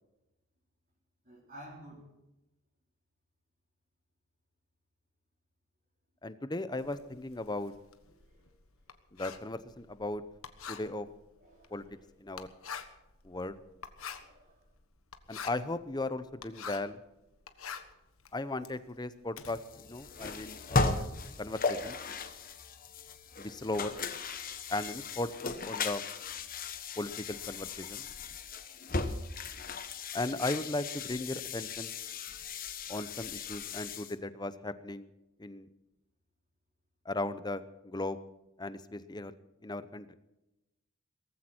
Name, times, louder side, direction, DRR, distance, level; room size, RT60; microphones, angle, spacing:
voice 1, 1.3-2.1 8.2-8.4 11.4-12.0 14.1-14.6, equal, 40° right, -5 dB, 4.3 m, -52 dB
voice 2, 6.2-7.7 9.1-10.2 10.7-11.1 11.7-11.8 12.2-12.5 13.2-13.6 15.3-17.0 18.3-19.6 19.9-21.1 21.4-22.0 23.4-24.0 24.7-26.0 27.0-28.1 30.1-31.9 32.9-35.1 35.4-35.7 37.0-38.2 38.6-39.3 39.6-40.1, left 2 dB, 20° left, 13 dB, 0.8 m, -36 dB
Writing, 6.8-17.0 17.3-19.5, left 7 dB, 80° left, 1.4 m, -46 dB
sound 1, 19.4-34.1, left 4 dB, 40° left, 1.2 m, -37 dB
18.0 x 15.0 x 4.5 m, 0.97 s
head